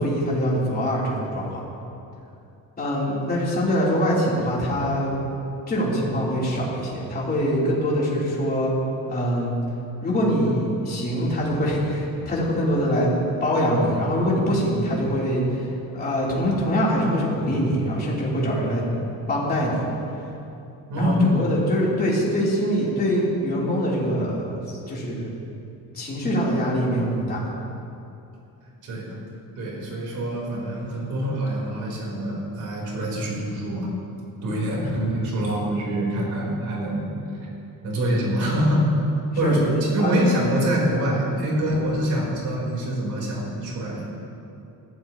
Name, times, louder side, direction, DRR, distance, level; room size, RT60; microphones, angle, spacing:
voice 1, 0.0-1.6 2.8-5.1 5.7-8.7 9.1-9.5 10.0-13.1 13.4-15.6 15.9-18.8 19.3-19.9 20.9-25.3 25.9-27.5 39.4-40.1 41.7-41.8, equal, 25° left, -6 dB, 3.5 m, -24 dB
voice 2, 20.9-21.2 28.8-29.2 29.6-33.9 34.4-37.1 37.8-38.9 39.4-39.6 39.9-44.1, right 1 dB, 55° right, -3 dB, 4.2 m, -25 dB
19.5 x 15.5 x 3.1 m, 2.7 s
cardioid pair, 170°, 36 cm